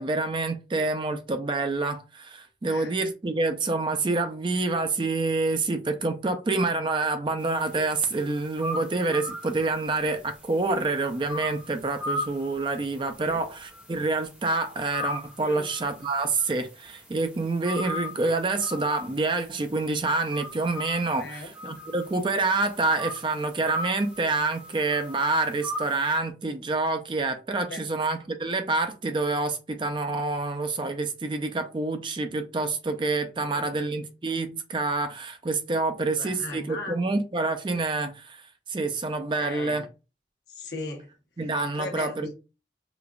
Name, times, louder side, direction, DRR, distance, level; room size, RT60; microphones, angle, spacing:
voice 1, 0.0-38.4 38.7-39.9 41.4-42.3, right 3 dB, 25° right, 0.4 m, -27 dB
voice 2, 2.6-2.9 13.2-13.4 15.4-15.7 21.2-21.5 27.7-27.8 33.4-33.8 36.0-36.9 39.4-39.9 40.5-41.1 41.7-42.3, left 3 dB, 75° left, 0.9 m, -38 dB
sound 1, 7.4-26.2, left 1 dB, 5° right, 0.8 m, -39 dB
5.0 x 2.3 x 2.4 m
head